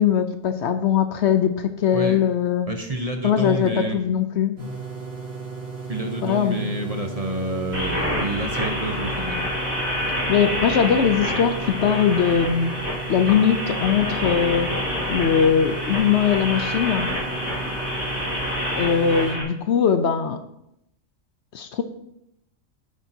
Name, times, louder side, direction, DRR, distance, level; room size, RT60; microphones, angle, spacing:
voice 1, 0.0-2.7 3.2-4.5 6.2-6.6 10.3-12.7 13.1-14.7 15.1-17.1 18.7-20.4 21.5-21.8, left 8 dB, 65° left, 8 dB, 0.9 m, -20 dB
voice 2, 2.7-4.0 5.9-9.3, right 2 dB, 35° right, 4 dB, 0.8 m, -28 dB
sound 1, 4.6-19.3, right 4 dB, 90° right, 2.6 m, -35 dB
sound 2, 7.7-19.4, left 1 dB, 10° right, 3.8 m, -28 dB
11.5 x 8.7 x 2.8 m, 0.81 s
omnidirectional pair, 1.3 m